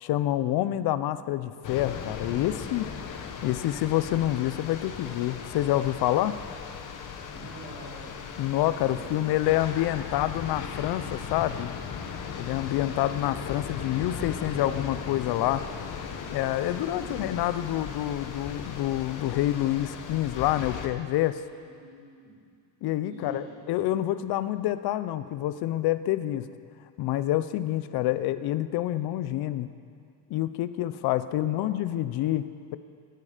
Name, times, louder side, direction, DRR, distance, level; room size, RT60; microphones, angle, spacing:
voice 1, 0.0-2.9 3.4-6.3 8.4-11.7 12.4-15.6 16.3-21.4 22.8-26.5 27.0-29.7 30.3-32.8, left 14 dB, 65° left, 13 dB, 0.7 m, -27 dB
sound 1, 1.6-20.9, left 6 dB, 45° left, 1.1 m, -37 dB
voice 2, 6.0-6.4 7.3-8.2 8.8-9.7 10.0-10.6 17.0-17.3 21.6-22.4 23.1-23.6 31.4-31.7, right 2 dB, 45° right, -6 dB, 3.6 m, -46 dB
16.5 x 11.0 x 5.0 m, 2.3 s
cardioid pair, 145°, 42 cm